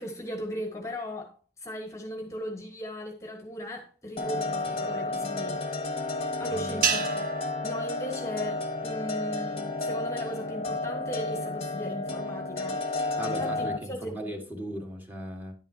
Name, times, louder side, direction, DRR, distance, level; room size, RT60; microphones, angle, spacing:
voice 1, 0.0-6.0 6.4-7.2 7.6-12.8 13.2-14.4, equal, 15° left, 1.1 m, -37 dB
sound 1, 4.2-13.8, left 2 dB, 35° left, 1.0 m, -32 dB
voice 2, 6.5-6.9 13.2-15.5, equal, 10° right, 1.5 m, -37 dB
sound 2, 6.8-9.3, right 6 dB, 50° right, 0.9 m, -32 dB
10.5 x 9.0 x 2.7 m
head